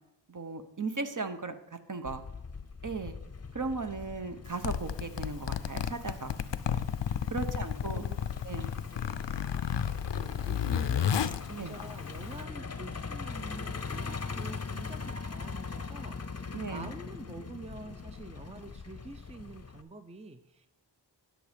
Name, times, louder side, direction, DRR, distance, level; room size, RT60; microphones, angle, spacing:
voice 1, 0.3-2.2 2.8-3.2 3.5-6.3 7.3-8.0 8.4-8.7 11.6-11.7 16.5-16.9, right 4 dB, 40° right, 7 dB, 1.0 m, -36 dB
Truck, 2.0-19.8, left 5 dB, 35° left, 0.7 m, -42 dB
Zipper (clothing), 4.4-12.4, left 8 dB, 70° left, 0.6 m, -32 dB
voice 2, 10.1-20.7, right 3 dB, 15° right, 8 dB, 0.6 m, -47 dB
11.0 x 6.5 x 5.1 m, 0.90 s
wide cardioid pair, 40°, 46 cm